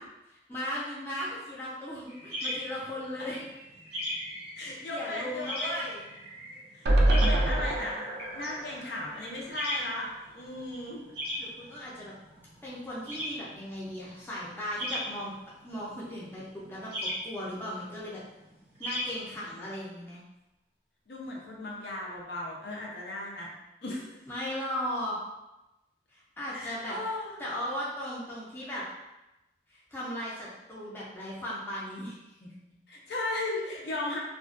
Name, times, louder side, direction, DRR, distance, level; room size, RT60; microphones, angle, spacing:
voice 1, 0.5-3.4 4.6-6.1 11.4-12.1 12.6-15.4 15.6-18.2 18.8-20.2 24.3-25.2 26.1-27.0 27.4-28.8 29.7-32.5, equal, 10° left, -8 dB, 0.4 m, -37 dB
sound 1, 2.1-19.7, left 1 dB, 35° right, 0.7 m, -39 dB
voice 2, 4.6-5.8 6.7-11.0 21.1-23.5 23.8-24.1 26.5-27.4 32.9-34.2, left 2 dB, 70° left, -3 dB, 0.5 m, -36 dB
sound 2, 6.9-10.1 10.5-10.6 10.8-10.9, right 1 dB, 70° right, 0.3 m, -27 dB
2.4 x 2.2 x 2.4 m, 0.98 s
head